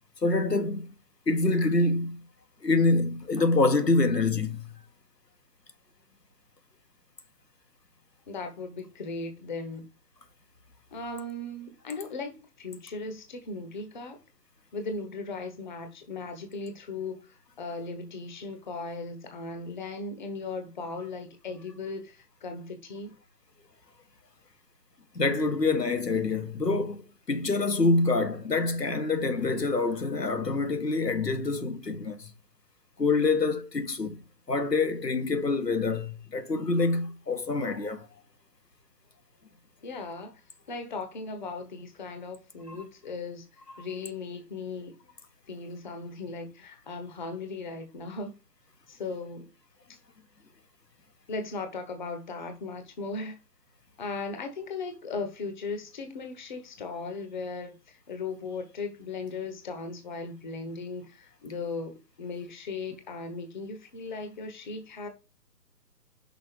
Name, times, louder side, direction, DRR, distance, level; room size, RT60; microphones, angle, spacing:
voice 1, 0.2-0.9 1.3-2.2 2.6-4.7 25.1-27.0 27.3-32.3 33.0-34.2 34.5-38.1, left 3 dB, 90° left, 1.3 m, -26 dB
voice 2, 8.3-9.9 10.9-14.2 14.7-23.1 39.8-40.4 40.7-43.4 43.8-45.0 45.5-48.3 48.9-49.5 51.3-53.4 54.0-65.1, left 3 dB, 30° left, 1.1 m, -37 dB
6.0 x 4.5 x 4.4 m
figure-of-eight pair, 145°, 48 cm